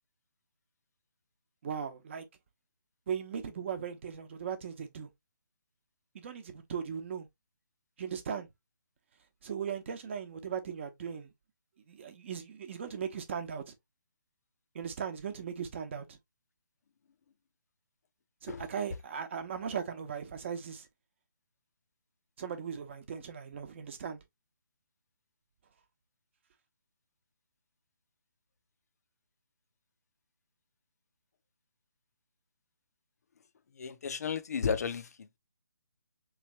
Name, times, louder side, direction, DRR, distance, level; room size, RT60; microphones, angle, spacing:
voice 1, 1.6-2.3 3.1-5.1 6.1-7.3 8.0-8.5 9.4-11.3 11.9-13.7 14.7-16.2 18.4-20.9 22.4-24.2, right 7 dB, 35° right, 0.8 m, -38 dB
voice 2, 33.8-35.4, left 6 dB, 50° left, 0.5 m, -34 dB
3.7 x 3.2 x 3.0 m
hypercardioid pair, 160°, 11 cm